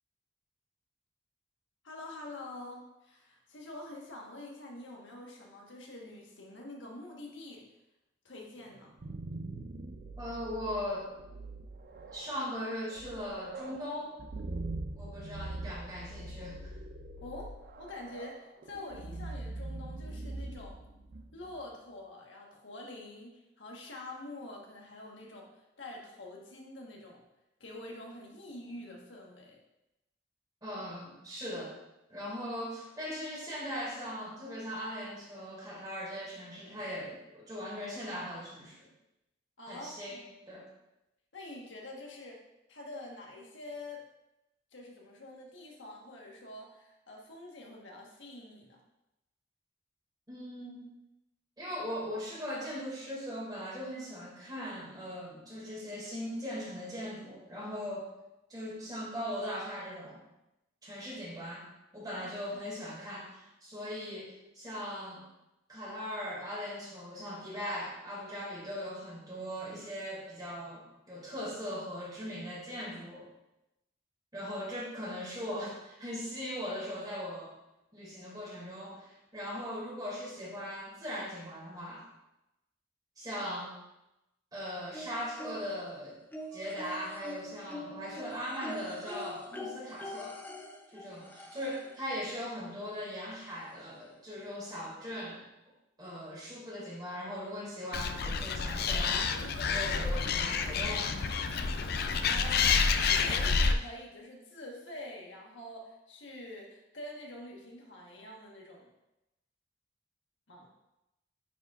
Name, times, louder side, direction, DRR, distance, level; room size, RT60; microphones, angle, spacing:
voice 1, 1.8-7.6 8.2-8.9 17.2-20.8 21.3-25.5 25.8-27.2 27.6-29.6 39.6-40.3 41.3-42.4 42.7-44.0 44.7-48.8 62.1-62.6 102.1-108.9 110.5-110.7, left 1 dB, 90° left, -1 dB, 1.4 m, -46 dB
sound 1, 8.7-21.6, right 2 dB, 55° right, 0.5 m, -43 dB
voice 2, 10.2-11.1 12.1-14.1 15.0-16.6 30.6-31.7 32.1-38.9 39.7-40.7 50.3-50.8 51.6-58.1 58.5-60.2 60.8-61.7 61.9-65.2 65.7-73.3 74.3-77.5 77.9-82.1 83.2-83.8 84.5-86.2 86.5-90.4 90.9-95.4 96.0-101.1, equal, 20° right, -5 dB, 2.3 m, -39 dB
sound 2, 84.9-85.9 86.3-92.0 93.2-93.3 93.7-93.8, left 1 dB, 10° left, 0.6 m, -44 dB
Animal, 97.9-103.7, left 5 dB, 55° left, 0.4 m, -29 dB
9.5 x 5.1 x 2.5 m, 0.92 s
head